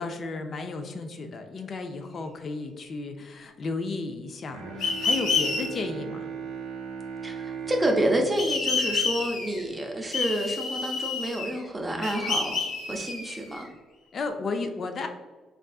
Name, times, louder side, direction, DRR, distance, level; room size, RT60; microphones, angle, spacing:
voice 1, 0.0-6.3 14.1-15.1, left 3 dB, 50° left, 5 dB, 0.3 m, -33 dB
Bowed string instrument, 4.5-10.1, right 6 dB, 80° right, 0.5 m, -38 dB
sound 1, 4.8-5.6 8.4-9.6 10.1-11.6 12.0-13.6, left 4 dB, 75° left, 0.8 m, -28 dB
voice 2, 7.2-12.6 12.9-13.7, right 1 dB, 20° right, 1 dB, 0.4 m, -28 dB
3.4 x 2.4 x 2.3 m, 1.3 s
cardioid pair, 90°, 0 cm